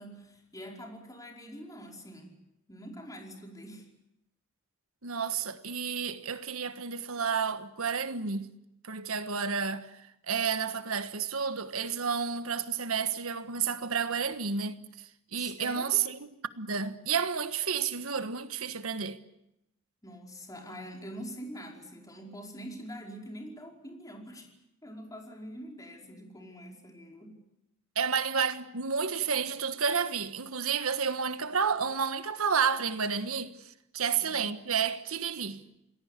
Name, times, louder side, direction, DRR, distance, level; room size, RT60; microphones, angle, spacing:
voice 1, 0.0-2.4 2.7-3.9 15.4-16.0 20.0-24.5 24.8-27.4 34.3-34.5, equal, 15° left, 5.1 m, -45 dB
voice 2, 5.0-8.5 8.8-16.3 16.6-19.2 27.9-35.6, right 6 dB, 80° right, 1.5 m, -31 dB
28.5 x 20.0 x 8.3 m
head